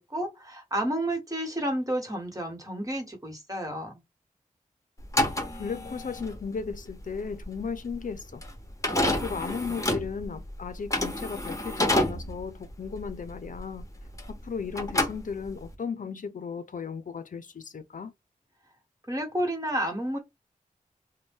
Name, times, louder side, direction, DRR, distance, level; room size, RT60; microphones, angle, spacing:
voice 1, 0.0-3.9 19.1-20.2, right 1 dB, 25° right, 1.5 m, -31 dB
sound 1, 5.0-14.5 14.7-15.7, left 1 dB, 20° left, 1.1 m, -29 dB
voice 2, 5.5-8.4 8.9-13.9 14.3-18.1, left 5 dB, 65° left, 0.6 m, -36 dB
2.5 x 2.2 x 3.6 m
cardioid pair, 45°, 15 cm